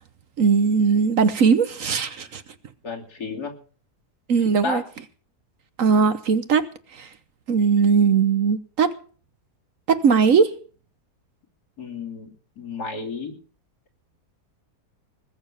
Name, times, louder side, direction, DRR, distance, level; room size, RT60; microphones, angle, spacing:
voice 1, 0.4-2.4 4.3-4.8 5.8-6.7 6.9-7.1 7.5-8.9 9.9-10.5, right 5 dB, 60° right, 1.2 m, -19 dB
voice 2, 2.8-3.5 4.6-4.8 11.8-13.3, left 4 dB, 70° left, 3.5 m, -32 dB
20.5 x 6.9 x 7.1 m
omnidirectional pair, 1.7 m